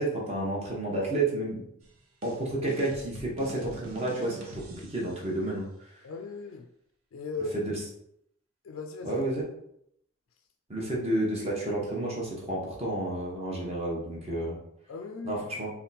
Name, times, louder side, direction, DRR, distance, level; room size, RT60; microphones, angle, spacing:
voice 1, 0.0-1.6 2.2-5.7 7.5-7.7 9.0-9.4 10.7-14.6 15.2-15.7, right 1 dB, 30° right, -3 dB, 0.9 m, -30 dB
sound 1, 1.8-5.3, right 2 dB, 90° right, 0.7 m, -45 dB
voice 2, 6.0-6.7 7.1-7.8 8.6-9.2 14.9-15.5, left 3 dB, 80° left, 4 dB, 0.4 m, -38 dB
3.5 x 2.3 x 4.0 m, 0.74 s
head